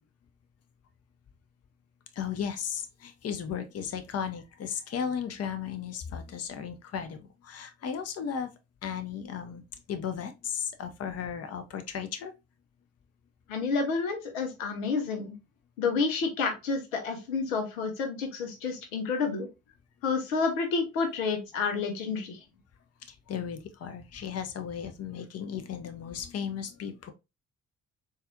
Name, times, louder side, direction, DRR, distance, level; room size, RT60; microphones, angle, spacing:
voice 1, 2.2-8.5 8.8-9.6 9.9-12.3 23.3-27.1, left 7 dB, 40° left, 0.7 m, -35 dB
voice 2, 13.5-15.3 15.8-19.5 20.0-22.4, left 4 dB, 80° left, 0.8 m, -29 dB
4.0 x 2.5 x 2.7 m
hypercardioid pair, 45°, 39 cm